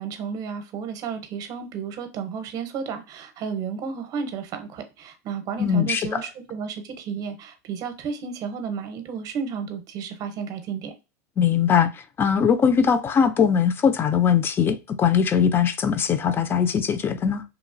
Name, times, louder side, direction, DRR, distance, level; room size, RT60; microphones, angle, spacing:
voice 1, 0.0-11.0, right 6 dB, 45° right, 0.7 m, -32 dB
voice 2, 5.6-6.2 11.4-17.4, left 7 dB, 25° left, 0.3 m, -21 dB
2.9 x 2.3 x 2.5 m
supercardioid pair, 120°, 9 cm